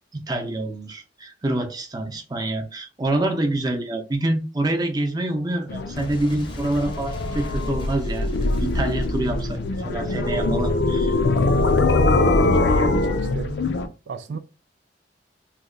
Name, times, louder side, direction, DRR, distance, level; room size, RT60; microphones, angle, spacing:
voice 1, 0.1-8.3 8.6-11.1, right 1 dB, 20° right, 0.6 m, -26 dB
sound 1, 5.7-13.9, left 2 dB, 70° left, 0.4 m, -22 dB
Boom, 5.9-11.5, left 1 dB, 25° left, 0.6 m, -38 dB
voice 2, 12.3-13.6 14.1-14.4, right 5 dB, 80° right, 0.4 m, -33 dB
2.9 x 2.2 x 3.7 m
head